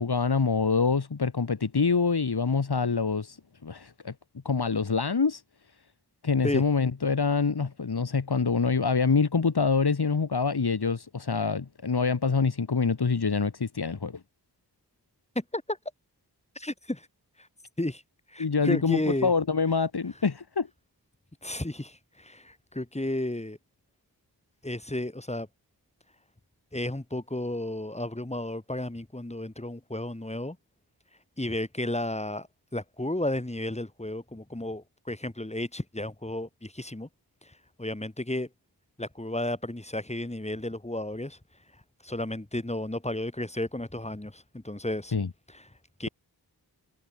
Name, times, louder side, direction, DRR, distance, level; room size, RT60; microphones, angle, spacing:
voice 1, 0.0-4.1 4.4-5.4 6.2-14.2 18.4-20.7 45.1-45.3, left 5 dB, 75° left, 4.7 m, -26 dB
voice 2, 15.3-15.8 16.5-17.1 17.4-17.5 17.8-18.0 18.3-19.3 21.4-23.6 24.6-25.5 26.7-30.6 31.4-32.5 32.7-37.1 37.4-38.5 39.0-41.4 42.0-45.2 45.5-45.7 46.0-46.1, left 1 dB, 15° left, 4.4 m, -33 dB
wide cardioid pair, 80°, 39 cm